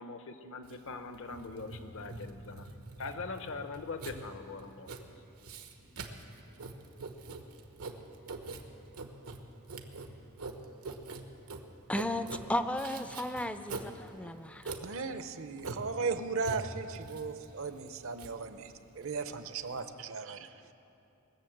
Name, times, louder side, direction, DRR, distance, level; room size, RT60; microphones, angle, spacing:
voice 1, 0.0-2.7 3.0-4.9, left 3 dB, 65° left, 8 dB, 0.9 m, -42 dB
Writing, 0.6-19.8, right 3 dB, 90° right, 1.1 m, -44 dB
voice 2, 11.9-14.7, left 1 dB, 5° left, 10 dB, 0.4 m, -34 dB
voice 3, 14.8-20.5, right 4 dB, 65° right, 10 dB, 0.7 m, -37 dB
20.5 x 6.9 x 7.8 m, 2.8 s
head